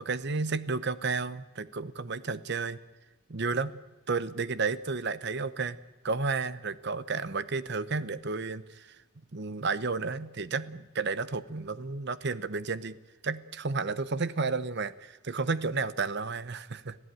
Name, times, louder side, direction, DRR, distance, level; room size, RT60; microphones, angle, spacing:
voice 1, 0.0-2.8 3.3-5.8 6.0-9.0 9.3-13.0 13.2-17.0, right 4 dB, 55° right, 15 dB, 0.8 m, -32 dB
25.5 x 16.0 x 9.1 m, 1.1 s
head